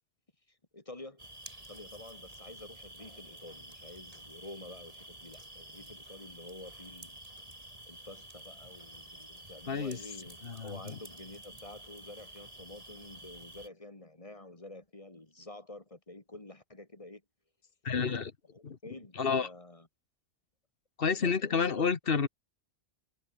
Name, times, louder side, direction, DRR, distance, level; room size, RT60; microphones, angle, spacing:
voice 1, 0.5-1.2 1.7-7.2 7.9-17.2 18.5-19.9 21.0-21.9, left 2 dB, 30° left, 2.6 m, -49 dB
sound 1, 1.2-13.7, right 1 dB, 30° right, 5.0 m, -50 dB
voice 2, 9.7-10.0 10.4-10.9 17.8-18.3 18.6-18.8 19.2-19.5 21.0-22.3, left 5 dB, 55° left, 1.6 m, -30 dB
omnidirectional pair, 1.2 m